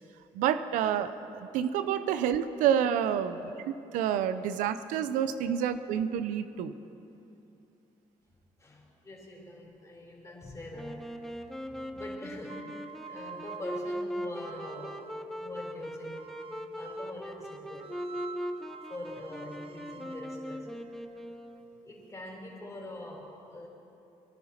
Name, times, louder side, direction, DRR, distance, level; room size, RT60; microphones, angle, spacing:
voice 1, 0.3-3.4 3.9-6.7, right 9 dB, 85° right, 11 dB, 0.6 m, -28 dB
voice 2, 3.2-3.5 4.4-4.5 8.6-11.0 11.7-12.8 13.1-15.0 15.4-16.3 16.8-17.9 18.9-20.7 21.8-23.7, left 1 dB, 25° left, -2 dB, 4.2 m, -44 dB
Wind instrument woodwind instrument, 10.7-21.9, equal, 5° left, 1.0 m, -40 dB
sound 1, 12.4-15.3 16.1-17.2 17.8-21.8, right 6 dB, 45° right, 0.6 m, -48 dB
23.0 x 11.0 x 4.4 m, 2.8 s
supercardioid pair, 75°, 13 cm